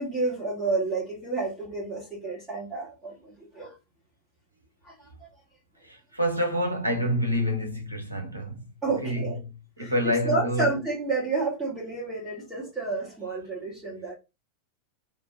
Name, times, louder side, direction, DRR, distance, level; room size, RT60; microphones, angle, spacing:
voice 1, 0.0-3.7 4.8-4.9 5.2-5.3 8.8-9.4 9.8-14.1, right 3 dB, 10° right, 1.4 m, -30 dB
voice 2, 5.9-8.6 9.0-9.3 9.8-10.7, equal, 85° right, 0.9 m, -27 dB
3.5 x 2.5 x 2.5 m
figure-of-eight pair, 90°, 0 cm